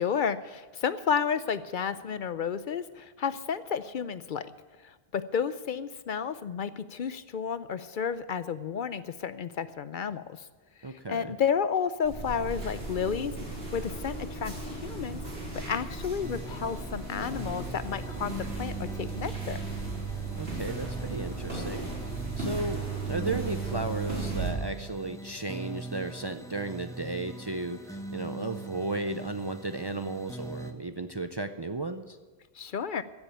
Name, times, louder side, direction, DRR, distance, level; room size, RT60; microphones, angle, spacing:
voice 1, 0.0-4.5 4.8-10.5 10.8-13.3 13.7-15.2 15.5-19.6 32.5-33.0, left 7 dB, 60° left, 14 dB, 0.7 m, -31 dB
voice 2, 10.8-11.3 20.4-21.9 22.4-32.2, right 2 dB, 35° right, 8 dB, 0.5 m, -34 dB
sound 1, 12.0-24.5, right 3 dB, 80° right, 4.4 m, -36 dB
sound 2, 16.2-30.7, right 1 dB, 5° left, 1.1 m, -42 dB
15.5 x 7.2 x 9.1 m, 1.4 s
omnidirectional pair, 1.0 m